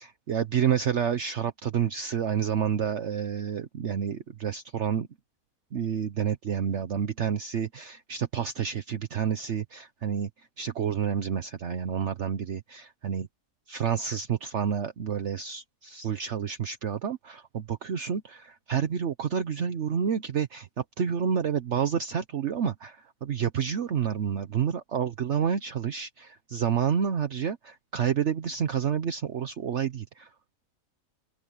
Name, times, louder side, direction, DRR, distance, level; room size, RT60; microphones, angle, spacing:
voice 1, 0.0-5.1 5.7-10.3 10.6-13.3 13.7-30.3, right 8 dB, 55° right, 1.2 m, -29 dB
open air
omnidirectional pair, 1.5 m